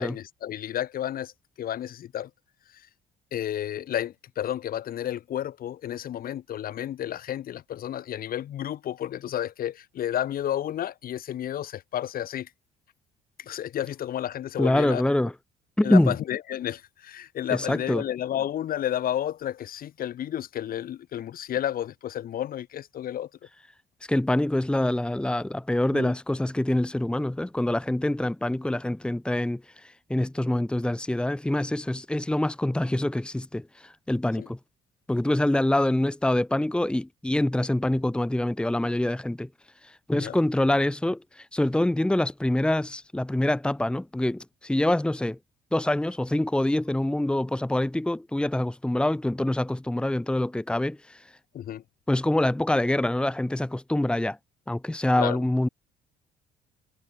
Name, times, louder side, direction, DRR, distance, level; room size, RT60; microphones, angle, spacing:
voice 1, 0.0-1.3 1.6-2.3 3.3-12.5 13.4-15.0 15.8-23.3 25.9-26.1 34.4-34.5 40.1-40.4 51.5-51.8 55.2-55.4, left 11 dB, 60° left, 4.4 m, -31 dB
voice 2, 14.6-15.3 15.8-16.2 17.5-18.0 24.1-34.6 35.1-39.5 39.8-45.4 45.7-51.3 52.1-54.4 54.7-55.7, left 1 dB, 5° left, 1.8 m, -25 dB
cardioid pair, 110°, 17 cm